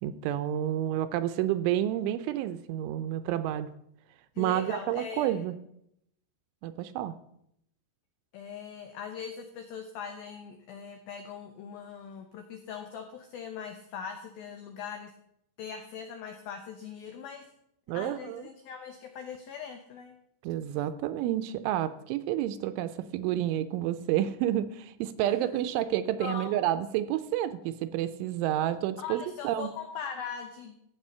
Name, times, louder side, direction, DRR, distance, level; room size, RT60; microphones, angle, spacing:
voice 1, 0.0-3.7 4.4-5.5 6.6-7.1 17.9-18.4 20.4-29.7, right 12 dB, 80° right, 12 dB, 2.9 m, -30 dB
voice 2, 4.4-5.4 8.3-15.1 15.6-17.5 17.9-20.2 25.3-25.6 26.2-26.5 29.0-30.8, left 7 dB, 90° left, 6 dB, 2.1 m, -41 dB
15.0 x 8.1 x 5.5 m, 0.76 s
omnidirectional pair, 5.7 m